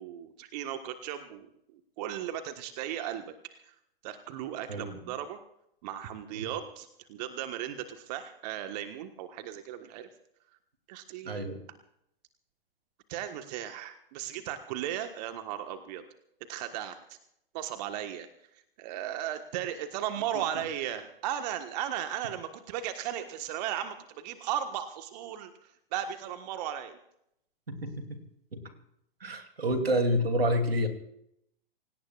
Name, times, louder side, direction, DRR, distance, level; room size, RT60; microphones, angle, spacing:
voice 1, 0.0-3.7 4.0-5.4 5.8-10.1 10.9-11.4 13.1-16.0 16.5-17.2 17.5-27.0, right 10 dB, 45° right, 8 dB, 1.5 m, -36 dB
voice 2, 4.7-5.1 6.3-6.5 11.2-11.7 20.3-20.4 27.7-28.2 28.5-28.6 29.2-30.9, equal, 85° right, 6 dB, 3.1 m, -29 dB
27.5 x 18.0 x 2.5 m, 0.76 s
figure-of-eight pair, 110°, 29 cm